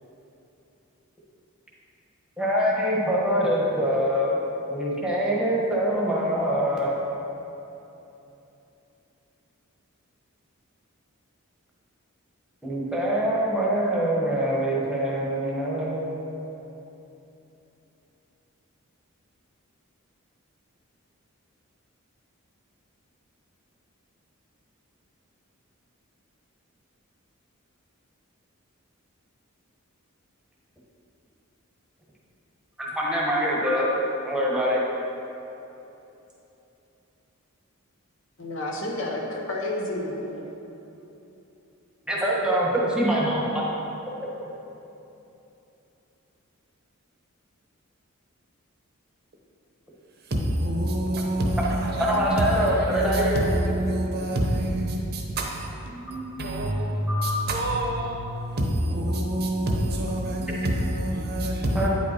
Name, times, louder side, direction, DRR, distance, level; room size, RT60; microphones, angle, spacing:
voice 1, 2.4-4.3 4.7-6.9 12.6-16.1 32.8-33.9 34.2-34.8 42.1-43.6 52.0-53.4 57.1-57.4 61.7-61.9, equal, 5° right, -5 dB, 1.2 m, -24 dB
voice 2, 38.4-40.5, left 1 dB, 60° left, -1 dB, 1.1 m, -30 dB
voice 3, 50.2-61.9, right 1 dB, 50° right, 1 dB, 0.8 m, -26 dB
9.1 x 5.3 x 4.3 m, 3.0 s
head